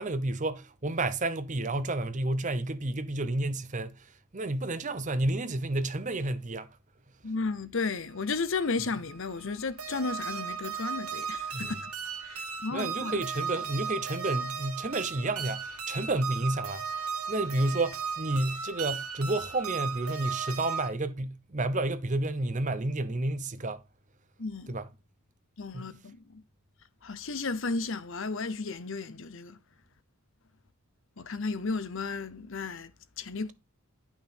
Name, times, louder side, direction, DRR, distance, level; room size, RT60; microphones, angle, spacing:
voice 1, 0.0-6.8 11.5-11.7 12.7-16.8 17.3-23.8 24.7-24.9 25.7-25.9, right 2 dB, 35° right, 0.7 m, -31 dB
voice 2, 7.2-11.9 12.2-13.2 24.4-24.8 25.6-26.4 27.0-29.6 31.2-33.5, left 4 dB, 60° left, 0.8 m, -34 dB
sound 1, 8.2-20.9, right 6 dB, 85° right, 2.1 m, -36 dB
11.0 x 6.0 x 4.3 m
head